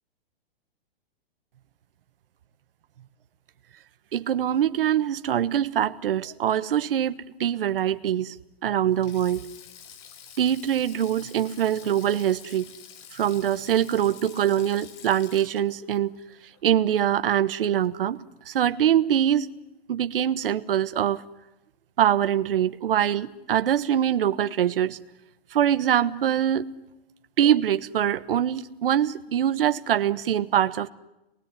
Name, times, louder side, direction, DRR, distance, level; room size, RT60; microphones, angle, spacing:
voice 1, 4.1-8.4 8.6-9.4 10.4-12.7 13.1-16.1 16.6-19.5 19.9-21.2 22.0-25.0 25.5-26.7 27.4-30.9, right 10 dB, 65° right, 11 dB, 1.3 m, -23 dB
Sink (filling or washing), 8.9-17.3 17.6-17.9 19.0-19.3, left 8 dB, 30° left, 2.1 m, -48 dB
28.5 x 21.0 x 9.9 m, 0.98 s
hypercardioid pair, 170°, 30 cm